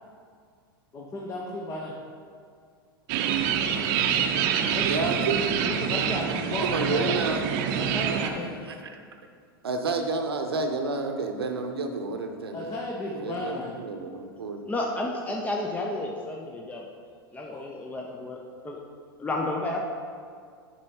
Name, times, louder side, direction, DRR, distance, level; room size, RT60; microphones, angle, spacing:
voice 1, 0.9-1.9 4.7-4.8 5.6-7.2 7.7-8.5 12.5-13.7 17.5-17.6, left 2 dB, 25° left, -2 dB, 1.1 m, -34 dB
sound 1, 3.1-8.3, right 8 dB, 55° right, 0.7 m, -26 dB
voice 2, 4.8-5.5 6.6-7.4 8.6-9.0 9.6-12.8 13.1-14.6, right 3 dB, 85° right, 5 dB, 0.8 m, -30 dB
voice 3, 14.7-16.8 17.3-18.8 19.2-19.8, left 2 dB, 10° left, 0 dB, 0.7 m, -31 dB
7.2 x 5.5 x 4.6 m, 2.2 s
hypercardioid pair, 95°, 12 cm